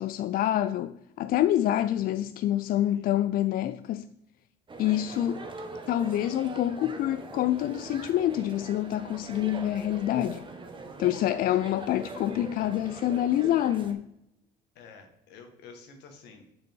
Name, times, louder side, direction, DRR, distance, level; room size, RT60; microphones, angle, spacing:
voice 1, 0.0-4.1 4.8-5.4 5.9-10.4 11.0-14.0, left 12 dB, 60° left, 0.4 m, -27 dB
voice 2, 1.6-2.3 2.8-3.1 11.6-12.0 14.8-16.5, left 4 dB, 85° left, 1.7 m, -51 dB
sound 1, 4.7-13.9, right 3 dB, 30° right, 1.3 m, -42 dB
8.2 x 6.2 x 4.5 m
cardioid pair, 110°, 17 cm